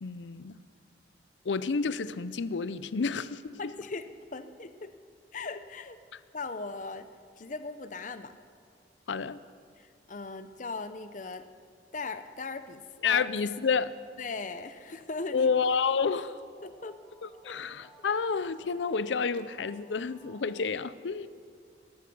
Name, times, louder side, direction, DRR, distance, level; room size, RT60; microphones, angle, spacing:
voice 1, 0.0-0.6 1.4-3.7 9.1-9.4 13.0-14.0 15.3-16.4 17.2-21.3, left 5 dB, 85° left, 0.5 m, -29 dB
voice 2, 3.6-4.0 4.3-4.9 5.3-6.0 6.3-7.1 7.4-8.4 9.8-11.5 11.9-13.2 14.2-15.5 16.6-17.0 17.4-17.5, left 3 dB, 45° left, 0.7 m, -38 dB
sound 1, 15.1-20.6, right 1 dB, 5° right, 5.1 m, -58 dB
20.0 x 12.5 x 5.4 m
head